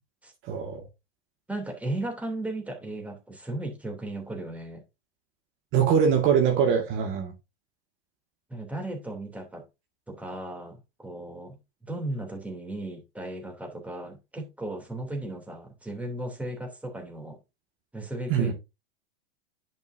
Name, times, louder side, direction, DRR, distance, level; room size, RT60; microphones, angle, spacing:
voice 1, 0.5-0.8 5.7-7.3 18.3-18.5, right 7 dB, 40° right, 2.0 m, -23 dB
voice 2, 1.5-4.8 8.5-9.6 10.1-11.6 11.9-17.4 17.9-18.5, right 1 dB, 5° right, 3.1 m, -36 dB
10.5 x 5.5 x 2.7 m
hypercardioid pair, 105°, 30 cm